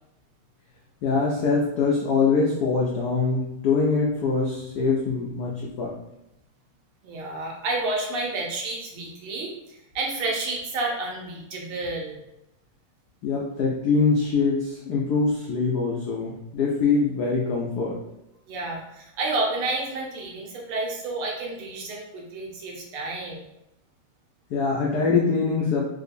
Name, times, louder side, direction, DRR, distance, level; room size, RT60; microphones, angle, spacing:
voice 1, 1.0-5.9 13.2-18.0 24.5-25.8, left 4 dB, 80° left, -3 dB, 0.9 m, -23 dB
voice 2, 7.0-12.2 18.5-23.4, right 2 dB, 80° right, -2 dB, 1.6 m, -30 dB
3.7 x 2.7 x 2.5 m, 0.86 s
omnidirectional pair, 2.4 m